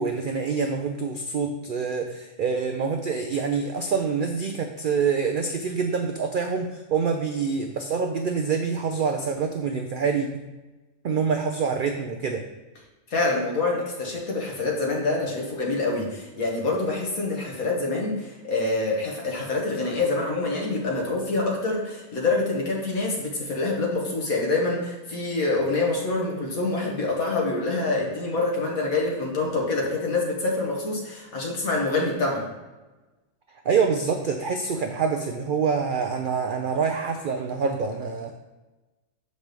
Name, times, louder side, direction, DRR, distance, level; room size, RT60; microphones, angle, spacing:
voice 1, 0.0-10.4 11.0-12.4 33.6-38.4, right 5 dB, 80° right, 4 dB, 0.4 m, -26 dB
voice 2, 13.1-32.5, left 3 dB, 85° left, -1 dB, 1.8 m, -26 dB
6.6 x 5.4 x 3.1 m, 1.1 s
omnidirectional pair, 1.4 m